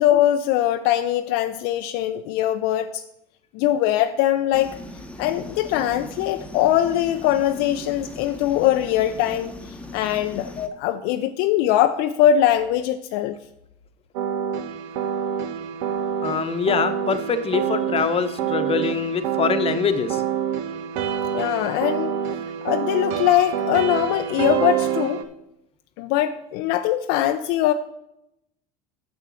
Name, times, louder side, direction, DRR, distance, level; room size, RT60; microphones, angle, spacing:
voice 1, 0.0-3.0 3.5-4.8 5.2-9.5 9.9-10.5 10.8-13.4 21.3-22.2 22.6-25.2 26.0-27.7, left 12 dB, 60° left, 8 dB, 0.5 m, -21 dB
sound 1, 4.5-10.7, left 1 dB, 5° left, 1.0 m, -39 dB
sound 2, 14.1-25.2, right 8 dB, 70° right, 0.8 m, -27 dB
voice 2, 16.2-20.2, left 6 dB, 30° left, 9 dB, 1.0 m, -24 dB
6.8 x 6.8 x 6.2 m, 0.83 s
hypercardioid pair, 85°, 20 cm